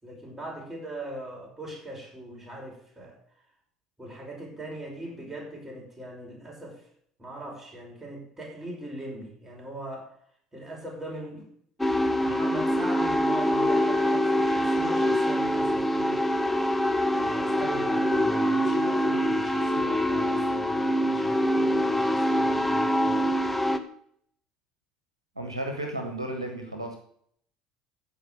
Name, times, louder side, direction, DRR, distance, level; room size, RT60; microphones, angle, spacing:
voice 1, 0.0-3.2 4.0-6.8 7.2-10.1 10.5-11.5 12.2-16.2 17.2-23.4, right 1 dB, 15° right, -1 dB, 5.7 m, -40 dB
sound 1, 11.8-23.8, equal, 5° left, 1.1 m, -24 dB
voice 2, 25.4-27.0, right 1 dB, 90° right, 4 dB, 1.4 m, -33 dB
14.5 x 5.3 x 6.8 m, 0.65 s
figure-of-eight pair, 60°, 3 cm